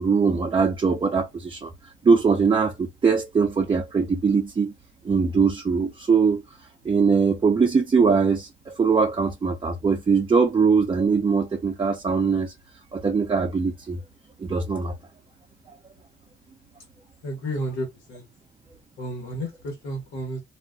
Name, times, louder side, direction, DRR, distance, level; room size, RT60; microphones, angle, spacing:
voice 1, 0.0-1.7 2.0-4.7 5.0-6.4 6.8-12.5 12.9-14.0 14.4-15.0, right 5 dB, 25° right, 0.5 m, -21 dB
voice 2, 17.2-18.3 19.0-20.4, equal, 90° left, 1.1 m, -32 dB
2.4 x 2.1 x 3.6 m
cardioid pair, 90°, 20 cm